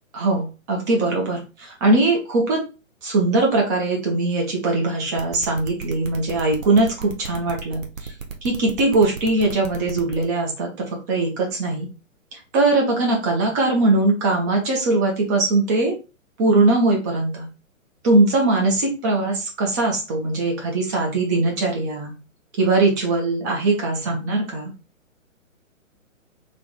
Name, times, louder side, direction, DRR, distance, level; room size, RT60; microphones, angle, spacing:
voice 1, 0.1-2.6 3.0-8.1 8.4-11.9 12.3-16.0 16.4-17.5 18.0-22.1 22.6-24.7, right 2 dB, 15° right, 0 dB, 0.5 m, -21 dB
sound 1, 5.2-10.2, right 6 dB, 70° right, 0.9 m, -34 dB
3.4 x 2.3 x 3.8 m, 0.31 s
figure-of-eight pair, 130°, 41 cm